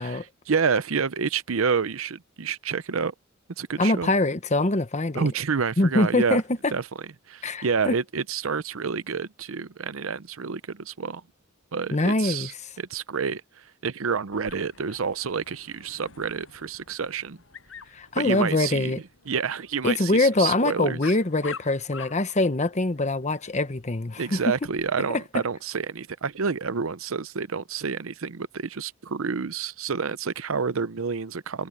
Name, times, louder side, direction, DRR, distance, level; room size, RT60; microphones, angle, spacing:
voice 1, 0.0-3.1 3.6-4.1 5.1-6.4 6.7-6.8 7.3-11.2 11.7-12.5 12.8-13.4 13.8-17.4 18.2-18.9 19.3-21.0 24.2-31.7, right 5 dB, 80° right, 0.7 m, -28 dB
voice 2, 3.8-5.3 5.8-6.7 7.4-7.9 11.9-12.5 17.9-19.0 19.8-24.4 25.1-25.2, left 2 dB, 35° left, 1.1 m, -24 dB
Dog, 14.3-24.9, left 5 dB, 70° left, 7.5 m, -47 dB
head